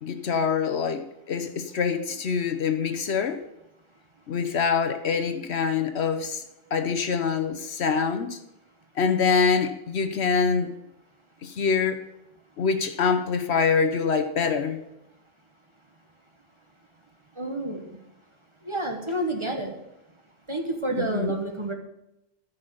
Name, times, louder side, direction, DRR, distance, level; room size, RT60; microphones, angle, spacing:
voice 1, 0.0-3.4 4.3-6.4 6.7-8.4 9.0-10.7 11.4-12.0 12.6-14.8 20.9-21.3, left 5 dB, 65° left, 8 dB, 1.1 m, -25 dB
voice 2, 17.3-18.0 18.6-19.7 20.5-21.7, right 2 dB, 25° right, 3 dB, 1.4 m, -29 dB
13.5 x 5.6 x 6.9 m, 0.88 s
omnidirectional pair, 1.2 m